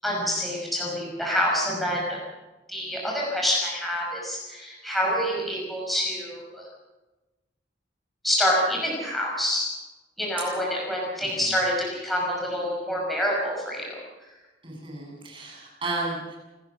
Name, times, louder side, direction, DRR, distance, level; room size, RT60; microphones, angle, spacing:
voice 1, 0.0-2.2 2.7-6.6 8.2-9.7 10.2-13.9, equal, ahead, -3 dB, 5.8 m, -27 dB
voice 2, 14.6-16.4, right 2 dB, 30° right, -2 dB, 8.0 m, -33 dB
28.0 x 15.0 x 6.4 m, 1.1 s
head